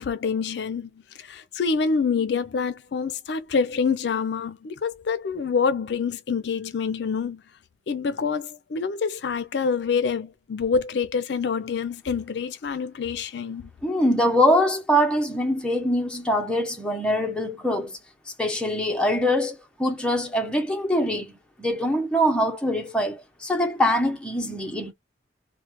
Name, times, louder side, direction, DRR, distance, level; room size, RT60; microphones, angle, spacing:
voice 1, 0.0-7.4 7.9-13.7, left 5 dB, 65° left, 0.4 m, -26 dB
voice 2, 13.8-18.0 18.4-21.3 21.6-24.9, equal, 5° left, 0.6 m, -23 dB
3.1 x 2.1 x 2.9 m
head